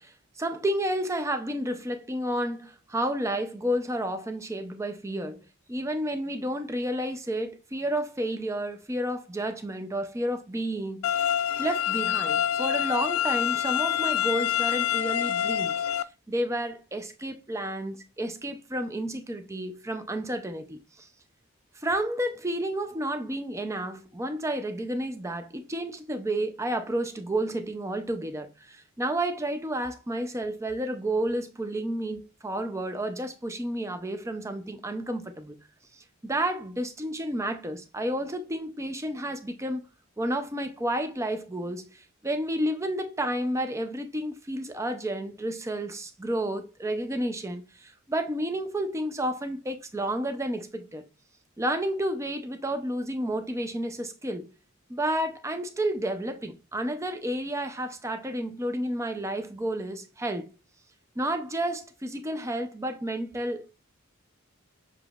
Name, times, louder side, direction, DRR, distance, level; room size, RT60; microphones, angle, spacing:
voice 1, 0.0-15.8 16.3-21.1 21.7-35.6 35.9-39.8 40.2-51.0 51.6-54.5 54.9-60.5 61.2-63.7, right 1 dB, 15° right, 0.5 m, -31 dB
sound 1, 11.0-16.0, left 10 dB, 90° left, 0.3 m, -26 dB
6.8 x 2.9 x 2.4 m
head